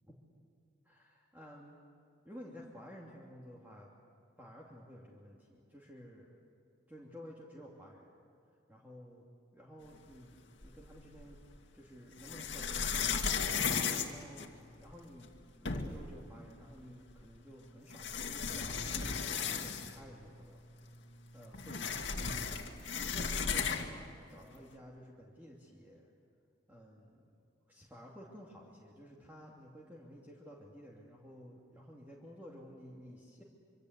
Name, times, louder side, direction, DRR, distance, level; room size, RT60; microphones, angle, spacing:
voice 1, 0.8-1.8 2.2-3.9 4.4-6.4 6.9-8.2 8.7-11.4 11.7-13.5 14.0-14.5 14.8-18.8 19.3-20.6 21.3-22.5 22.9-24.0 24.3-26.1 26.7-27.3 27.7-33.4, equal, 10° right, -4 dB, 2.8 m, -53 dB
sound 1, 10.6-11.4 12.2-14.9 15.4-15.5 15.7-16.1 17.2-17.3 17.9-20.1 20.4-20.5 20.8-24.0, left 6 dB, 70° left, 2.3 m, -35 dB
26.0 x 25.5 x 8.3 m, 2.4 s
head